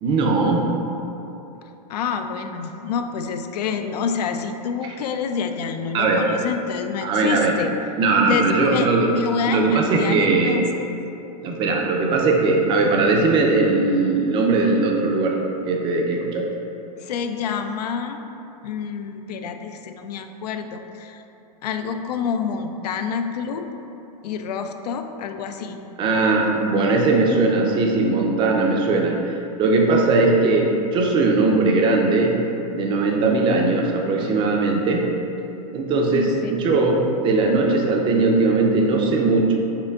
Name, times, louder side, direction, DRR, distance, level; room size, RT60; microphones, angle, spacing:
voice 1, 0.0-0.7 5.9-6.3 7.0-7.6 8.0-9.1 9.5-10.6 11.4-15.4 15.6-16.5 26.0-29.1 29.6-32.4 32.7-35.1 35.7-39.5, right 3 dB, 25° right, 1 dB, 0.5 m, -19 dB
voice 2, 1.9-7.7 8.3-10.9 17.0-18.2 18.6-21.2 21.6-23.7 24.2-25.8 36.1-36.6, left 6 dB, 80° left, 7 dB, 0.4 m, -28 dB
5.7 x 3.7 x 2.3 m, 2.9 s
hypercardioid pair, 135°, 20 cm